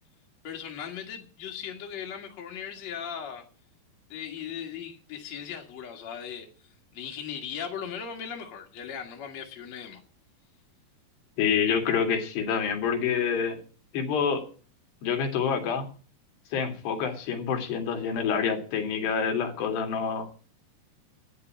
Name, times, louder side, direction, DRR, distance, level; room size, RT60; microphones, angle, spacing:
voice 1, 0.4-3.4 4.1-6.7 6.9-10.0, left 8 dB, 50° left, 2.6 m, -38 dB
voice 2, 11.4-13.6 13.9-14.4 15.0-15.9 16.5-20.3, left 6 dB, 85° left, 4.5 m, -27 dB
12.5 x 10.0 x 7.4 m
omnidirectional pair, 4.7 m